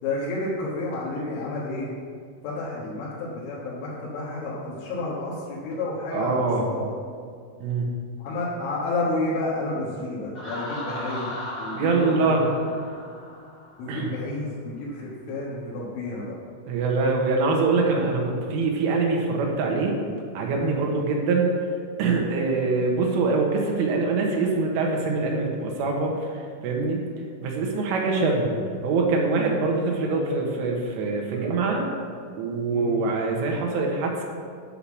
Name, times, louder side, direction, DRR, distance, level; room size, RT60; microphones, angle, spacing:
voice 1, 0.0-1.9 2.4-6.9 8.2-12.3 13.8-16.4 20.7-20.9 30.1-30.2 31.3-31.4 32.7-32.9, left 2 dB, 75° left, -8 dB, 3.9 m, -31 dB
voice 2, 6.1-6.7 7.6-7.9 11.7-12.4 13.9-14.1 16.7-20.0 20.4-21.5 22.0-27.0 27.4-28.5 28.8-31.8 32.4-34.2, right 3 dB, 75° right, 0 dB, 3.7 m, -24 dB
Laughter, 10.3-14.0, left 1 dB, 25° left, 1.3 m, -36 dB
10.0 x 5.8 x 7.1 m, 2.1 s
omnidirectional pair, 5.9 m